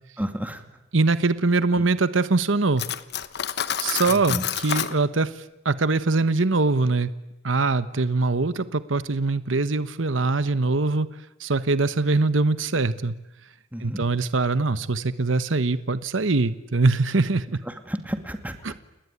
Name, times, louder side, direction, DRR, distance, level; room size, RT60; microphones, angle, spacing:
voice 1, 0.2-0.6 1.8-1.9 4.1-4.4 13.7-14.0 17.7-18.6, equal, 10° right, 7 dB, 2.2 m, -31 dB
voice 2, 0.9-2.8 3.8-5.3 5.6-7.1 7.4-11.1 11.4-13.1 13.8-17.6 18.6-18.8, right 3 dB, 75° right, 13 dB, 1.1 m, -22 dB
Cutlery silverware, 2.8-5.0, left 9 dB, 60° left, 1.1 m, -28 dB
30.0 x 19.5 x 9.8 m, 0.97 s
head